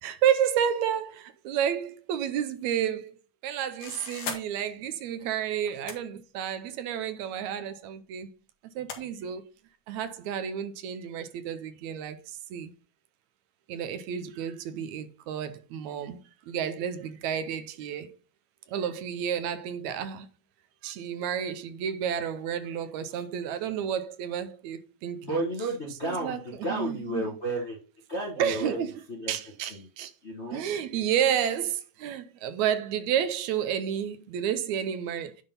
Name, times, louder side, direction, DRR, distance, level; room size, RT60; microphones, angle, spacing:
voice 1, 0.0-3.1 3.4-8.3 8.8-9.4 9.9-12.2 12.5-12.7 13.7-16.2 16.5-18.1 18.7-20.3 20.8-25.4 26.0-27.2 28.4-28.9 29.3-30.1 30.5-35.3, right 9 dB, 80° right, 2.1 m, -30 dB
sound 1, 3.8-4.4 5.7-6.0 7.1-7.2 8.9-9.0, left 6 dB, 75° left, 2.9 m, -36 dB
voice 2, 25.2-27.8 28.1-28.8 29.1-29.3 29.7-29.8 30.2-30.6, right 1 dB, 40° left, 1.0 m, -32 dB
10.0 x 3.7 x 5.2 m
omnidirectional pair, 3.3 m